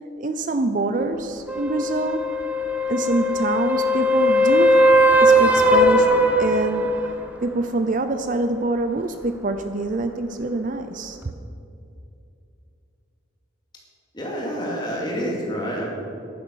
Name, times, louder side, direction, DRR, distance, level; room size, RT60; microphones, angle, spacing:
voice 1, 0.2-2.2 2.9-4.8 5.2-6.1 6.4-6.9 7.4-11.3, right 2 dB, 40° right, 8 dB, 0.5 m, -25 dB
sound 1, 1.5-7.1 11.2-11.3, equal, 5° right, 0.7 m, -18 dB
voice 2, 14.1-15.9, equal, 20° left, -3 dB, 2.4 m, -28 dB
11.0 x 9.5 x 6.3 m, 2.6 s
head